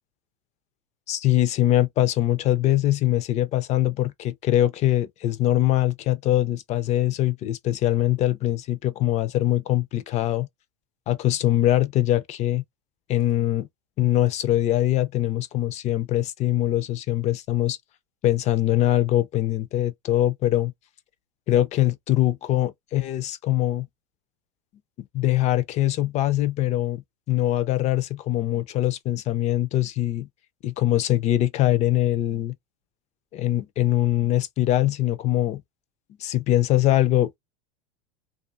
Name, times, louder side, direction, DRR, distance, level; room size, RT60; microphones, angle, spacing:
voice 1, 1.1-10.5 11.1-12.6 13.1-13.7 14.0-17.8 18.2-20.7 21.5-23.9 25.0-30.3 30.6-32.5 33.3-35.6 36.2-37.4, left 13 dB, 35° left, 0.5 m, -22 dB
2.5 x 2.4 x 2.5 m
hypercardioid pair, 105°, 19 cm